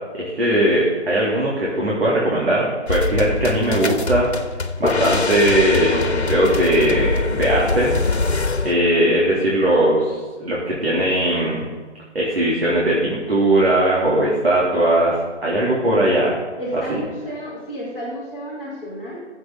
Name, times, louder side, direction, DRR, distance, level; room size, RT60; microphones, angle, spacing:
voice 1, 0.1-4.3 4.8-8.3 8.6-11.6 12.1-16.4 16.9-17.0, right 1 dB, 55° right, -6 dB, 3.5 m, -19 dB
sound 1, 2.9-8.7, left 3 dB, 60° left, 1.3 m, -23 dB
voice 2, 16.6-19.2, equal, 10° right, -12 dB, 3.1 m, -31 dB
22.5 x 7.9 x 4.1 m, 1.4 s
figure-of-eight pair, 155°, 36 cm